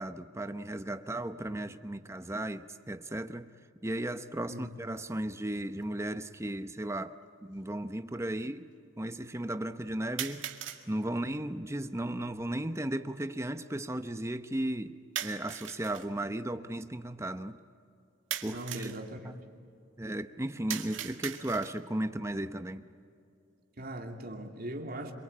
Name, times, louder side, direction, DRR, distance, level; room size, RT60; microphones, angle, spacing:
voice 1, 0.0-3.5 3.8-8.7 9.0-10.5 10.9-17.6 18.4-18.9 19.2-19.3 20.0-22.8, right 1 dB, 15° right, 0.8 m, -35 dB
sound 1, 5.8-5.9 6.9-7.0 10.2-10.8 15.2-16.1 18.3-19.0 20.7-21.9, right 10 dB, 70° right, 2.0 m, -39 dB
voice 2, 18.4-19.3 23.8-25.1, right 1 dB, 50° right, 2.8 m, -40 dB
27.0 x 23.5 x 8.7 m
head